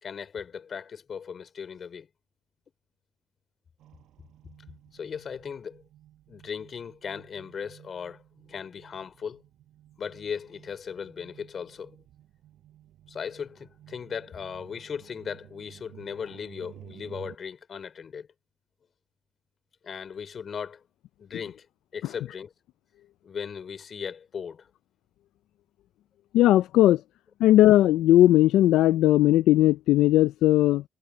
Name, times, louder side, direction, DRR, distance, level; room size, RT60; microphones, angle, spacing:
voice 1, 0.0-2.1 4.9-5.8 6.3-9.4 10.0-11.9 13.1-18.3 19.8-20.8 21.2-21.7 21.9-22.5 23.2-24.7, left 6 dB, 50° left, 3.1 m, -37 dB
sound 1, 3.8-17.4, right 13 dB, 80° right, 5.8 m, -53 dB
voice 2, 26.3-27.0 27.4-30.8, left 14 dB, 90° left, 0.3 m, -18 dB
cardioid pair, 90°, 0 cm